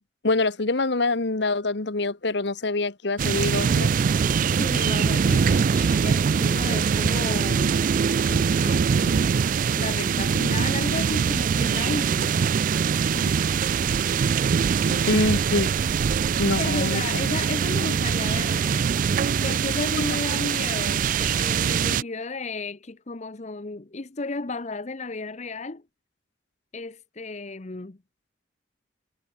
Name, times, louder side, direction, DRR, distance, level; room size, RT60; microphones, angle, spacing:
voice 1, 0.2-3.9 15.1-15.7 16.4-17.2 19.9-20.0, left 2 dB, 60° left, 1.2 m, -25 dB
sound 1, 3.2-22.0, right 6 dB, 45° right, 0.3 m, -23 dB
voice 2, 4.5-7.9 8.3-9.3 9.8-12.4 13.1-13.4 14.8-15.2 16.6-18.9 19.4-25.8 26.7-28.0, left 3 dB, 35° left, 0.8 m, -33 dB
head